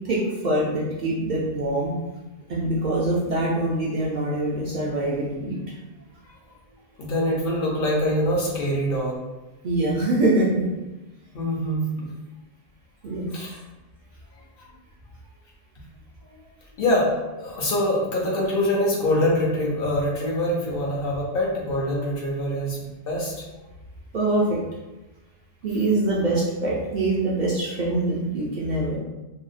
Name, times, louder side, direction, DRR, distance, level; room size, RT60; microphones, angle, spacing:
voice 1, 0.0-1.9 2.5-5.6 9.6-10.7 13.0-13.3 24.1-24.6 25.6-29.0, right 2 dB, 60° right, -5 dB, 0.5 m, -24 dB
voice 2, 7.0-9.2 11.3-12.1 13.3-13.6 16.2-16.4 16.8-17.1 17.4-22.8 23.1-23.3, left 1 dB, 60° left, -4 dB, 0.8 m, -24 dB
2.6 x 2.0 x 2.4 m, 1.1 s
omnidirectional pair, 1.1 m